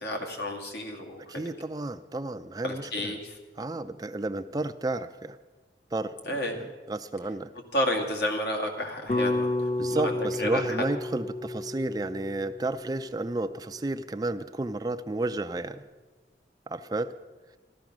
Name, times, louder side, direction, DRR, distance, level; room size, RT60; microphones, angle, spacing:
voice 1, 0.0-1.5 2.6-3.4 6.3-6.6 7.7-10.9, left 1 dB, 75° left, 1 dB, 2.2 m, -31 dB
voice 2, 1.3-3.2 3.6-5.4 5.9-6.1 6.6-7.5 9.8-15.8 16.7-17.1, right 2 dB, 20° right, 10 dB, 0.4 m, -32 dB
sound 1, 9.1-13.4, left 2 dB, 40° left, 1.0 m, -31 dB
14.5 x 12.5 x 6.1 m, 1.3 s
head